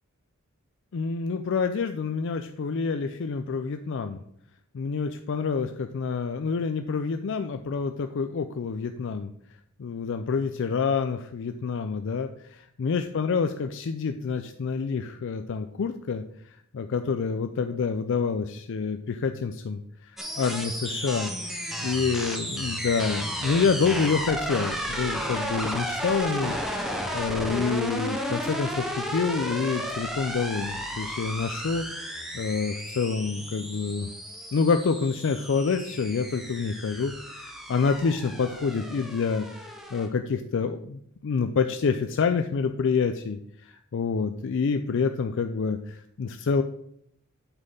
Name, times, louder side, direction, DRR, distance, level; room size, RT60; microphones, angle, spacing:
voice 1, 0.9-4.2 4.7-9.3 9.8-34.1 34.5-46.6, left 5 dB, 55° left, 8 dB, 0.4 m, -28 dB
sound 1, 20.2-40.1, equal, ahead, 0.9 m, -33 dB
7.9 x 4.3 x 5.4 m, 0.70 s
head